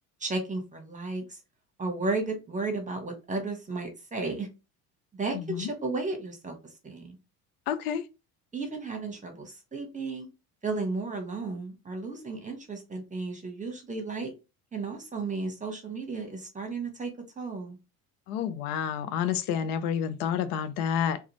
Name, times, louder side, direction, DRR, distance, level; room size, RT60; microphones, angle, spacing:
voice 1, 0.2-1.4 1.8-4.5 5.1-6.6 6.8-7.2 8.5-10.3 10.6-14.3 14.7-17.1 17.4-17.8, right 3 dB, 15° right, 1.0 m, -33 dB
voice 2, 5.3-5.7 7.7-8.0 18.3-21.2, left 8 dB, 80° left, 0.6 m, -29 dB
2.4 x 2.3 x 3.0 m
hypercardioid pair, 75°, 44 cm